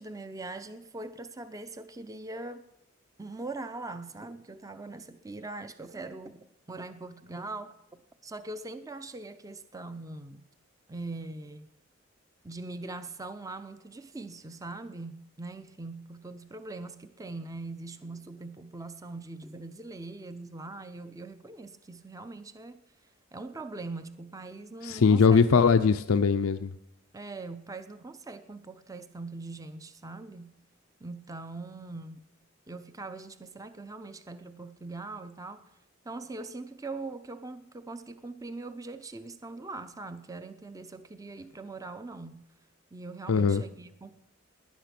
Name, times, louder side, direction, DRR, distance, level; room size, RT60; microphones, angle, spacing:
voice 1, 0.0-2.7 3.2-10.4 10.9-11.7 12.4-22.8 23.3-25.6 27.1-30.5 31.0-32.3 32.7-35.6 36.0-42.5 42.9-44.2, right 3 dB, 15° right, 0.5 m, -41 dB
voice 2, 24.8-26.7 43.3-43.6, left 5 dB, 80° left, 0.5 m, -21 dB
18.5 x 10.5 x 5.9 m
head